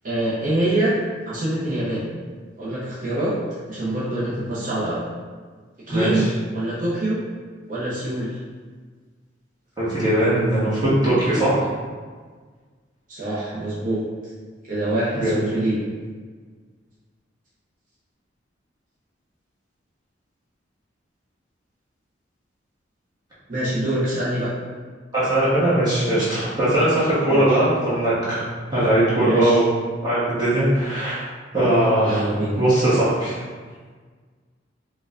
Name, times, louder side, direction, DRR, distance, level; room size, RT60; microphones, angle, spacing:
voice 1, 0.0-1.0 1.2-2.1 2.6-3.3 3.7-5.0 5.9-7.2 7.7-8.4 13.1-14.0 14.6-15.8 23.5-24.5 27.3-27.6 29.1-29.6 32.0-32.6, right 1 dB, 45° right, -8 dB, 0.7 m, -25 dB
voice 2, 5.9-6.3 9.8-11.7 15.1-15.4 25.1-29.7 30.0-31.2 31.5-32.3 32.6-33.4, right 1 dB, 20° right, -11 dB, 1.0 m, -20 dB
4.4 x 2.2 x 2.4 m, 1.5 s
head